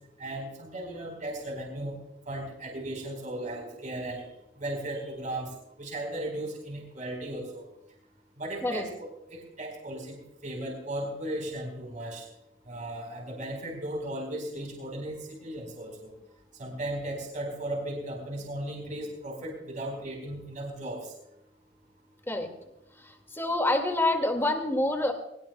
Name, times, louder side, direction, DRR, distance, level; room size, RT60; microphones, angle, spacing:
voice 1, 0.2-2.0 2.3-4.2 4.6-5.5 5.8-7.6 8.4-12.3 12.7-16.1 16.6-21.1, right 1 dB, 45° right, 1 dB, 4.5 m, -36 dB
voice 2, 23.4-25.1, left 2 dB, 15° left, 5 dB, 2.1 m, -26 dB
22.0 x 19.5 x 2.3 m, 0.81 s
head